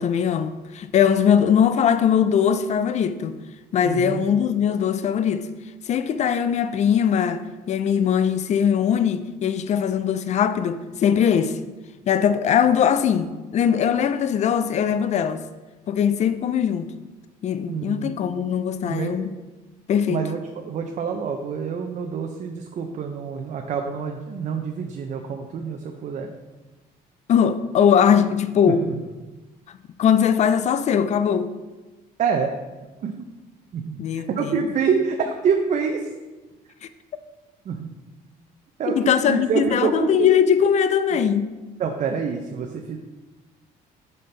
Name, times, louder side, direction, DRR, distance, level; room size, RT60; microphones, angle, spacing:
voice 1, 0.0-3.4 3.7-5.5 5.9-7.4 7.7-11.6 12.1-15.4 15.9-16.9 17.4-19.3 19.9-20.3 27.3-28.9 30.0-31.5 34.0-34.6 38.9-41.5, left 8 dB, 45° left, 0.4 m, -20 dB
voice 2, 3.8-4.2 17.7-18.2 18.9-19.2 20.1-26.3 28.7-29.0 32.2-32.5 33.0-33.3 33.7-34.0 34.3-36.1 37.7-37.9 38.8-40.3 41.8-43.0, right 6 dB, 45° right, 0.5 m, -26 dB
5.6 x 5.3 x 3.3 m
cardioid pair, 110°, 17 cm